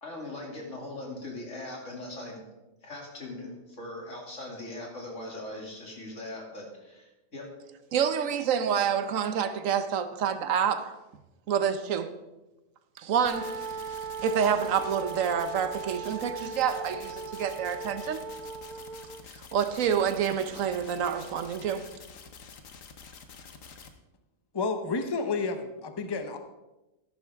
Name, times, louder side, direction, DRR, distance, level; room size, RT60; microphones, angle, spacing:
voice 1, 0.0-2.4 2.8-7.5, left 2 dB, 70° left, -1 dB, 3.0 m, -40 dB
voice 2, 7.9-11.0 11.5-12.1 13.0-13.7 14.2-18.3 19.3-21.9, right 8 dB, 85° right, 11 dB, 1.2 m, -28 dB
sound 1, 13.3-23.9, left 5 dB, 85° left, 1.4 m, -48 dB
Wind instrument woodwind instrument, 13.3-19.3, right 5 dB, 60° right, 0.5 m, -38 dB
voice 3, 24.5-26.4, left 4 dB, 25° left, 7 dB, 0.8 m, -30 dB
13.0 x 11.0 x 3.5 m, 1.0 s
omnidirectional pair, 1.3 m